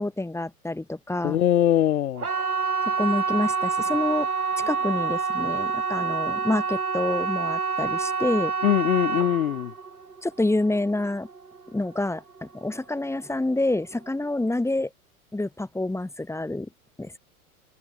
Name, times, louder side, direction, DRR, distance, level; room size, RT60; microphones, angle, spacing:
voice 1, 0.0-1.4 2.9-4.3 4.6-8.5 10.2-11.3 11.7-14.9 15.3-16.7 17.0-17.2, left 2 dB, 5° left, 5.9 m, -27 dB
voice 2, 1.2-2.3 8.6-9.7, left 11 dB, 75° left, 2.5 m, -22 dB
sound 1, 2.1-13.0 13.3-13.9 14.2-14.3, right 5 dB, 90° right, 3.9 m, -28 dB
figure-of-eight pair, 90°, 43 cm